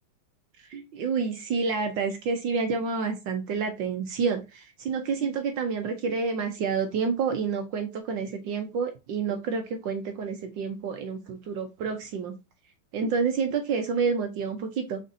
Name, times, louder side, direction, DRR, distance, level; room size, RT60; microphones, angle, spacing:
voice 1, 0.7-12.3 12.9-15.0, right 5 dB, 70° right, 6 dB, 1.4 m, -29 dB
5.1 x 3.9 x 2.6 m, 0.26 s
omnidirectional pair, 2.2 m